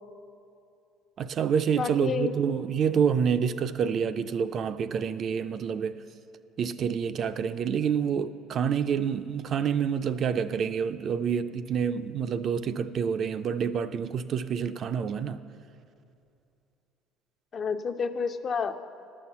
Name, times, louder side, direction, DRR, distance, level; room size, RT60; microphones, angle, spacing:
voice 1, 1.2-6.0 6.6-15.4, right 7 dB, 45° right, 0.4 m, -28 dB
voice 2, 1.7-2.3 17.5-18.7, left 6 dB, 35° left, 0.5 m, -29 dB
11.0 x 7.0 x 7.1 m
cardioid pair, 115°, 0 cm